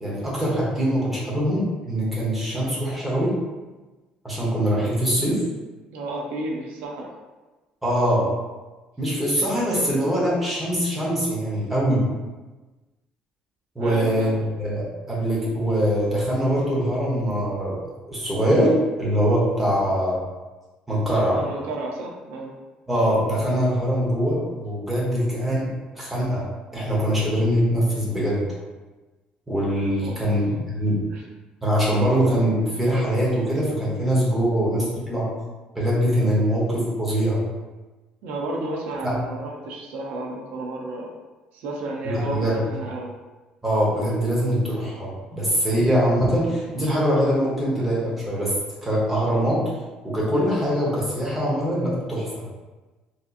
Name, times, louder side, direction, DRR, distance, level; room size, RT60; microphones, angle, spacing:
voice 1, 0.0-3.4 4.2-5.4 7.8-8.3 9.0-12.0 13.7-14.3 14.6-17.8 18.1-20.2 20.9-21.4 22.9-26.4 26.7-28.4 29.5-31.0 31.6-35.3 35.7-37.4 39.0-39.1 42.0-42.6 43.6-48.5 48.8-49.6 50.0-52.3, equal, 5° right, -6 dB, 0.9 m, -23 dB
voice 2, 5.9-7.1 13.8-14.3 21.3-22.6 30.0-30.2 31.1-31.2 38.2-41.1 41.5-43.2, right 2 dB, 85° right, -1 dB, 0.5 m, -32 dB
3.4 x 2.7 x 2.4 m, 1.2 s
cardioid pair, 155°, 3 cm